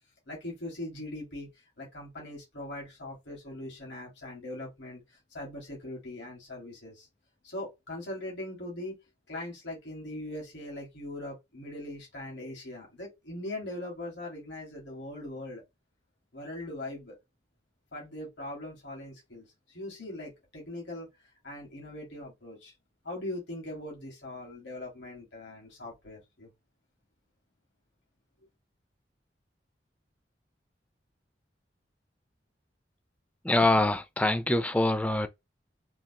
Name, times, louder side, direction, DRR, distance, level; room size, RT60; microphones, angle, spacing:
voice 1, 0.3-1.5 1.8-7.1 7.4-9.0 9.3-15.6 16.3-17.1 17.9-21.1 21.4-22.7 23.0-26.5, left 1 dB, 85° left, 2.0 m, -40 dB
voice 2, 33.4-35.3, left 2 dB, 10° left, 0.3 m, -24 dB
3.7 x 2.7 x 2.9 m
head